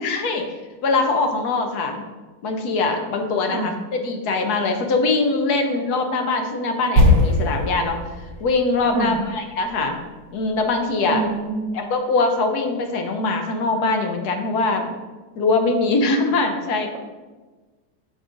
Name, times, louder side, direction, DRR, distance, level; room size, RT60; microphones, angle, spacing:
voice 1, 0.0-0.6 0.8-2.0 2.4-8.0 8.4-10.0 10.3-11.2 11.7-14.9 15.4-17.0, left 3 dB, 65° left, 4 dB, 1.2 m, -22 dB
sound 1, 7.0-10.9 11.1-11.3, left 1 dB, 40° left, 2.4 m, -21 dB
voice 2, 11.1-11.8, right 3 dB, 80° right, 3 dB, 1.2 m, -26 dB
6.1 x 4.1 x 5.0 m, 1.3 s
omnidirectional pair, 1.9 m